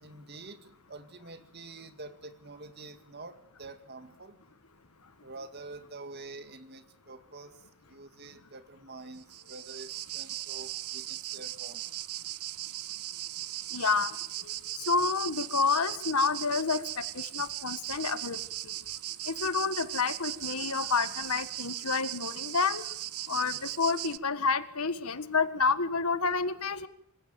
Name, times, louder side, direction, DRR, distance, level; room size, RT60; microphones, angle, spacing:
voice 1, 0.0-4.4 5.2-7.6 7.9-11.8, right 3 dB, 45° right, 9 dB, 2.1 m, -47 dB
sound 1, 9.2-24.2, right 14 dB, 80° right, 0.8 m, -38 dB
voice 2, 13.7-14.1 14.9-16.8 17.1-18.4 18.6-18.7 19.3-22.8 23.3-26.9, left 4 dB, 80° left, 12 dB, 1.7 m, -29 dB
26.5 x 15.5 x 7.8 m, 0.74 s
head